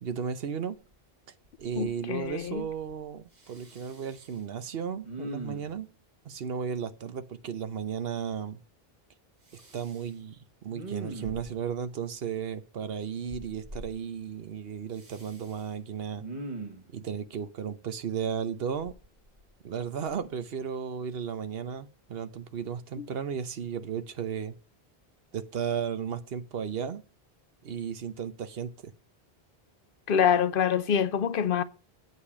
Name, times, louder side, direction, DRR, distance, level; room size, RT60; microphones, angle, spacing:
voice 1, 0.0-0.7 1.6-5.9 6.2-8.6 9.7-16.3 16.9-18.9 19.6-24.5 25.3-27.0 27.6-28.9, right 7 dB, 70° right, 1.0 m, -34 dB
Respiratory sounds, 0.9-1.0 1.4-2.0 2.2-3.0 3.4-4.4 5.0-5.9 9.5-10.1 10.7-11.7 13.3-13.9 14.9-15.6 16.2-16.9 18.7-19.7 20.1-20.3, right 2 dB, 45° right, 1.5 m, -42 dB
voice 2, 1.8-2.7 23.0-23.1 30.1-31.6, left 8 dB, 65° left, 0.7 m, -26 dB
8.2 x 4.9 x 7.1 m
omnidirectional pair, 1.0 m